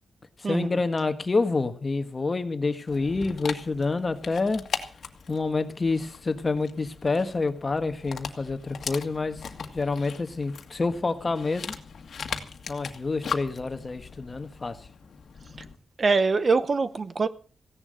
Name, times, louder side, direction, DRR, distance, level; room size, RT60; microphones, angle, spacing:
voice 1, 0.4-4.6 5.3-9.4 9.7-11.8 12.7-14.9, left 3 dB, 30° left, 1.4 m, -28 dB
Dog, 2.9-15.8, left 6 dB, 65° left, 1.8 m, -39 dB
voice 2, 16.0-17.3, right 4 dB, 40° right, 0.8 m, -23 dB
16.0 x 11.0 x 6.4 m
wide cardioid pair, 135°, 0 cm